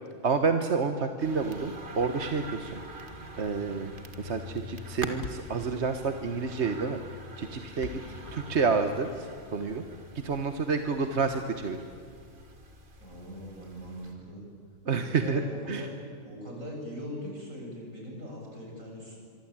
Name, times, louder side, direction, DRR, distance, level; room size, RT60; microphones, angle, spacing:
voice 1, 0.2-3.0 3.3-3.9 4.2-7.0 7.4-7.9 8.3-9.8 10.1-11.8 14.9-15.4 15.7-15.9, right 4 dB, 55° right, 7 dB, 1.5 m, -29 dB
sound 1, 1.2-14.1, right 1 dB, 40° right, 2.1 m, -44 dB
Thump thud, 5.2-9.2, left 3 dB, 80° left, 2.1 m, -44 dB
voice 2, 7.7-8.0 13.0-14.5 15.0-15.9 16.2-19.2, equal, 75° right, -1 dB, 8.6 m, -41 dB
25.0 x 24.5 x 8.9 m, 2.4 s
omnidirectional pair, 1.4 m